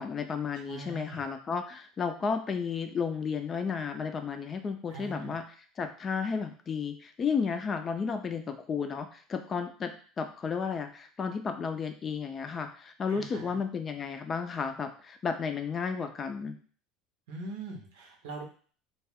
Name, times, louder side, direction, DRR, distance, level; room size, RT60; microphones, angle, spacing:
voice 1, 0.0-5.4 5.8-16.5, left 5 dB, 30° left, 7 dB, 0.4 m, -33 dB
voice 2, 0.5-1.3 4.9-5.4 13.1-13.6 17.3-18.4, right 3 dB, 85° right, 1 dB, 0.8 m, -42 dB
2.3 x 2.2 x 3.4 m, 0.42 s
supercardioid pair, 100°, 0 cm